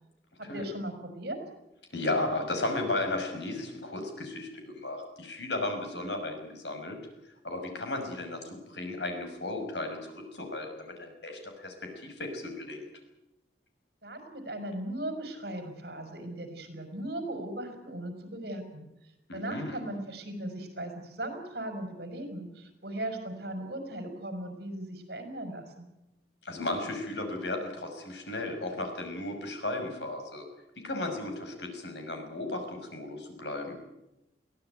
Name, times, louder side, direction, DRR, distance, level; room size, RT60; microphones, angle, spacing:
voice 1, 0.4-1.4 14.0-18.9 19.3-25.9, right 1 dB, 60° right, 6 dB, 5.3 m, -38 dB
voice 2, 1.9-7.0 7.4-8.4 8.7-11.7 12.0-12.8 19.3-19.8 26.4-30.4 30.8-33.8, left 2 dB, 75° left, 4 dB, 6.1 m, -34 dB
22.5 x 17.0 x 9.3 m, 0.92 s
head